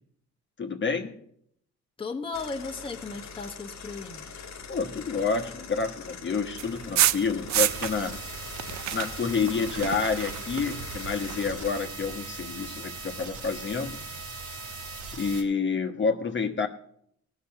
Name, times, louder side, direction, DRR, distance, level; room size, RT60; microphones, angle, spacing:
voice 1, 0.6-1.2 4.7-8.3 8.9-14.0 15.1-16.7, left 5 dB, 40° left, 1.2 m, -29 dB
voice 2, 2.0-4.2, left 4 dB, 15° left, 1.1 m, -35 dB
sound 1, 2.3-11.7, left 5 dB, 60° left, 1.4 m, -43 dB
sound 2, 6.6-8.2 8.4-11.8, right 14 dB, 65° right, 0.4 m, -29 dB
sound 3, 7.6-15.4, right 3 dB, 80° right, 2.7 m, -39 dB
17.5 x 6.0 x 5.8 m
cardioid pair, 90°, 30 cm